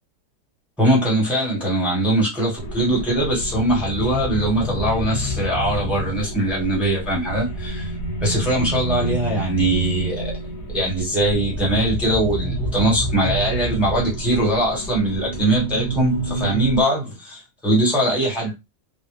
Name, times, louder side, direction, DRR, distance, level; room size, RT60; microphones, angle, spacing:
voice 1, 0.8-7.9 8.2-10.3 10.7-18.5, right 1 dB, ahead, 1.2 m, -21 dB
sound 1, 2.6-16.8, right 1 dB, 65° left, 1.4 m, -28 dB
3.8 x 2.3 x 3.2 m
omnidirectional pair, 2.0 m